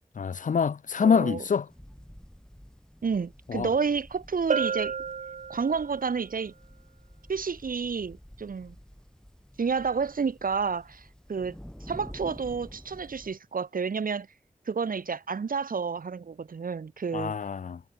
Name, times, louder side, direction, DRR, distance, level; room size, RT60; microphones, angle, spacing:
voice 1, 0.2-1.7 3.5-3.7 17.1-17.8, left 6 dB, 65° left, 0.4 m, -26 dB
voice 2, 1.0-1.4 3.0-4.9 5.5-6.5 7.3-8.8 9.6-14.3 14.7-17.3, right 5 dB, 85° right, 1.1 m, -30 dB
sound 1, 1.7-13.4, equal, 5° left, 2.6 m, -50 dB
Bell, 4.5-6.1, right 6 dB, 55° right, 0.4 m, -30 dB
wide cardioid pair, 55°, 14 cm